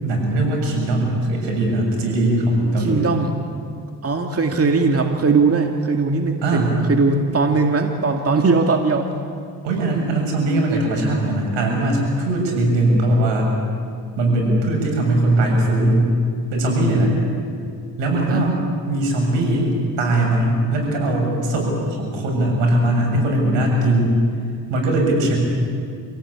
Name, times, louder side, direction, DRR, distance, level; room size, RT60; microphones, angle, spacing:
voice 1, 0.0-3.1 6.4-6.7 9.6-13.5 14.2-16.1 16.5-17.1 18.0-18.6 18.9-24.1 24.7-25.4, right 1 dB, 80° right, 0 dB, 7.4 m, -20 dB
voice 2, 2.8-3.4 4.0-9.2 18.2-18.5, right 4 dB, 35° right, 3 dB, 2.2 m, -19 dB
27.0 x 17.0 x 8.8 m, 2.3 s
supercardioid pair, 60°, 42 cm